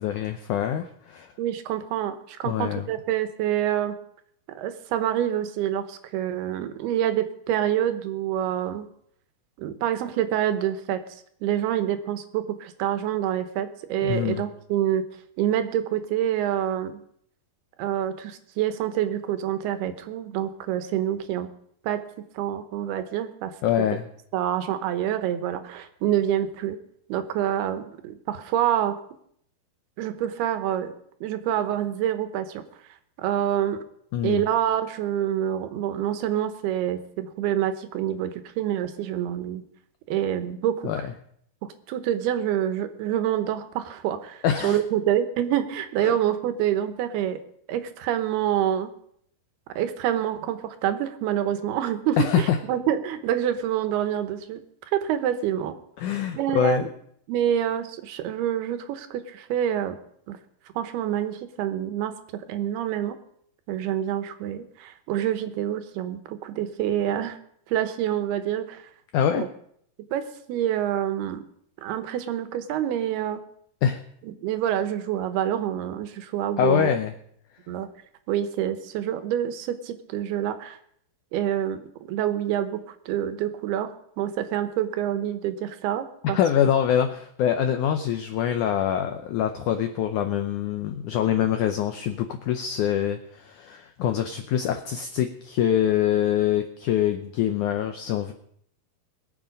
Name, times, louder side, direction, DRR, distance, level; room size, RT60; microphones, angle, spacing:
voice 1, 0.0-1.3 2.4-2.8 14.0-14.4 23.6-24.1 34.1-34.4 40.8-41.1 44.4-44.8 46.0-46.2 52.2-52.6 56.0-56.9 69.1-69.4 73.8-74.0 76.6-77.1 86.2-98.3, left 9 dB, 90° left, 7 dB, 1.7 m, -24 dB
voice 2, 1.4-4.0 4.6-8.9 9.6-11.0 11.4-15.0 15.4-17.0 17.8-21.5 21.8-22.0 22.3-23.5 24.3-26.8 27.1-28.9 30.0-30.9 31.2-32.6 33.2-33.8 34.2-39.6 40.1-41.1 41.6-47.4 47.7-48.9 49.8-54.6 54.9-55.8 56.3-56.9 57.3-60.0 60.3-60.4 60.8-62.1 62.5-63.2 63.7-67.4 67.7-68.8 69.4-69.5 70.1-71.4 71.8-73.4 74.2-76.9 77.7-77.9 78.3-80.8 81.3-81.8 82.1-86.7, right 11 dB, 85° right, 9 dB, 3.0 m, -27 dB
22.0 x 7.4 x 5.2 m, 0.67 s
omnidirectional pair, 4.5 m